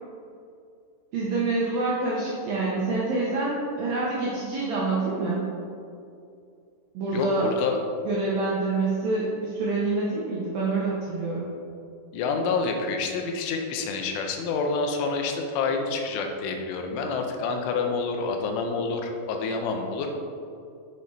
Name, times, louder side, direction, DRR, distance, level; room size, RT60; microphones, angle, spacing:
voice 1, 1.1-5.5 6.9-7.5 8.0-11.5, right 3 dB, 75° right, -6 dB, 2.1 m, -26 dB
voice 2, 7.1-7.8 12.1-20.2, left 4 dB, 85° left, 3 dB, 3.3 m, -28 dB
7.7 x 6.7 x 4.1 m, 2.5 s
omnidirectional pair, 5.5 m